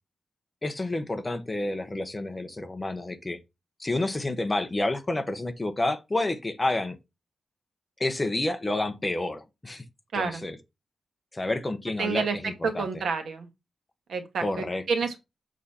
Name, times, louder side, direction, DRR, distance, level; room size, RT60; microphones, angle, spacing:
voice 1, 0.6-3.4 3.8-7.0 8.0-9.8 10.1-10.6 11.3-12.9 14.4-14.8, left 2 dB, 15° left, 0.9 m, -29 dB
voice 2, 12.0-13.5 14.1-15.2, right 5 dB, 75° right, 1.6 m, -29 dB
7.4 x 4.1 x 4.3 m
wide cardioid pair, 170°, 0 cm